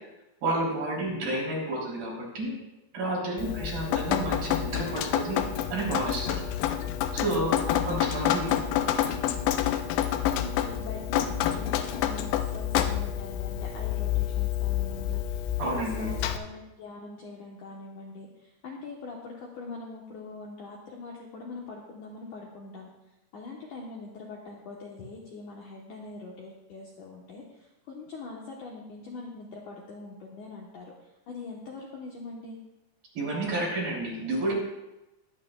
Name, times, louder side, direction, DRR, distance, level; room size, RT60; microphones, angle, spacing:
voice 1, 0.4-2.5 2.9-5.4 5.7-6.4 7.1-7.6 7.8-8.6 15.6-16.1 33.1-34.5, right 1 dB, 55° right, -4 dB, 4.9 m, -30 dB
Drip, 3.4-16.4, left 11 dB, 90° left, 2.9 m, -28 dB
voice 2, 3.5-4.1 7.6-9.2 10.3-22.9 23.3-30.9 31.3-32.6, left 3 dB, 70° left, -2 dB, 2.0 m, -43 dB
21.0 x 8.8 x 2.3 m, 0.98 s
omnidirectional pair, 4.9 m